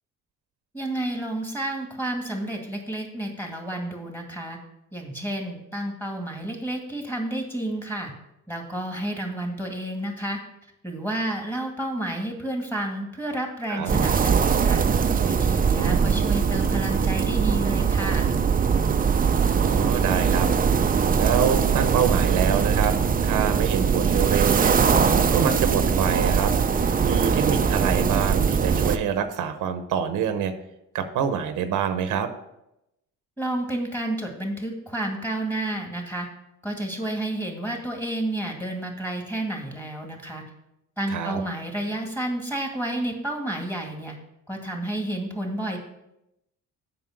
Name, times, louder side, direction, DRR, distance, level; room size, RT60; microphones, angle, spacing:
voice 1, 0.7-4.6 4.9-8.1 8.5-10.4 10.8-14.9 15.2-18.3 33.4-36.3 36.6-40.4 41.0-44.1 44.5-45.8, right 1 dB, 5° left, 1 dB, 2.2 m, -30 dB
sound 1, 13.9-29.0, right 6 dB, 30° right, 0.5 m, -21 dB
voice 2, 19.6-20.5 21.2-22.9 23.2-24.8 25.3-26.5 27.0-30.5 30.9-32.3 41.1-41.4, right 8 dB, 85° right, 9 dB, 0.9 m, -26 dB
7.7 x 5.7 x 5.9 m, 0.87 s
cardioid pair, 90°, 30 cm